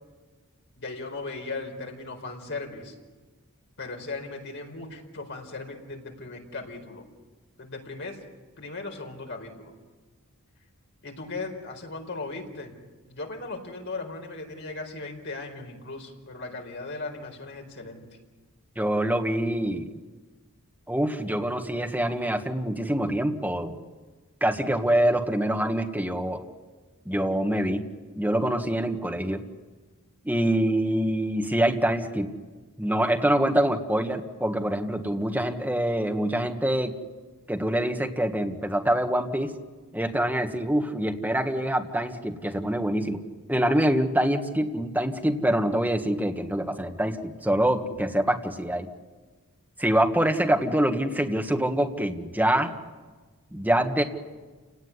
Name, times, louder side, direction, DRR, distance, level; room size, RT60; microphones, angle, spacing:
voice 1, 0.7-2.9 3.8-7.0 7.6-8.2 8.6-9.7 11.0-12.7 13.0-18.0, left 3 dB, 55° left, 3 dB, 4.6 m, -37 dB
voice 2, 18.7-20.0 20.9-23.8 24.4-26.4 27.0-27.8 28.1-29.4 30.2-32.3 32.8-37.0 37.5-39.5 39.9-43.2 43.5-48.9 49.8-52.7 53.5-54.0, right 1 dB, 10° right, 3 dB, 1.7 m, -25 dB
29.0 x 18.0 x 9.7 m, 1.3 s
head